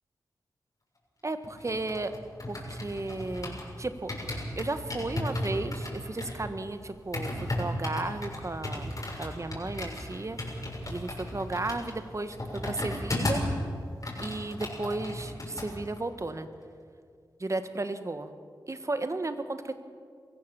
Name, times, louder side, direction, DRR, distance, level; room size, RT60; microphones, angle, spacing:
voice 1, 1.2-2.1 2.5-4.1 4.6-8.9 9.2-10.4 10.9-13.4 14.2-16.5 17.4-18.3 18.7-19.7, right 2 dB, 40° right, 9 dB, 1.6 m, -34 dB
sound 1, 1.4-3.7 4.1-13.6 13.9-15.7 16.0-16.2, left 1 dB, 45° left, 6.3 m, -35 dB
23.5 x 15.5 x 7.1 m, 2.2 s
cardioid pair, 45°, 8 cm